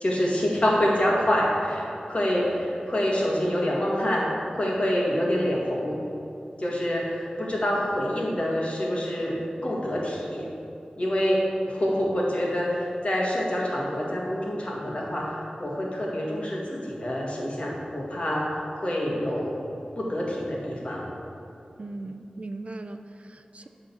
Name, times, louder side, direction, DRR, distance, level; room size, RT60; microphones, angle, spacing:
voice 1, 0.0-6.0 6.6-9.4 9.6-10.5 11.0-19.6 20.0-21.1, equal, 45° left, -4 dB, 1.9 m, -26 dB
voice 2, 21.8-23.7, right 2 dB, 50° right, 8 dB, 0.4 m, -38 dB
10.0 x 3.9 x 7.2 m, 2.8 s
wide cardioid pair, 80°, 3 cm